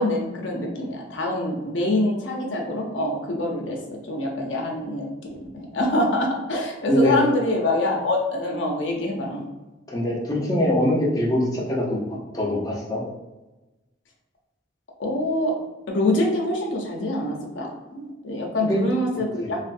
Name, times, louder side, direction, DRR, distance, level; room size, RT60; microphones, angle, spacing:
voice 1, 0.0-5.1 5.5-9.5 15.0-15.5 15.9-19.6, left 1 dB, 80° left, 0 dB, 0.7 m, -25 dB
voice 2, 6.9-7.2 9.9-12.0 12.3-13.0 18.6-18.8 19.4-19.6, left 1 dB, 20° left, -3 dB, 0.6 m, -23 dB
3.2 x 2.5 x 2.5 m, 1.1 s
head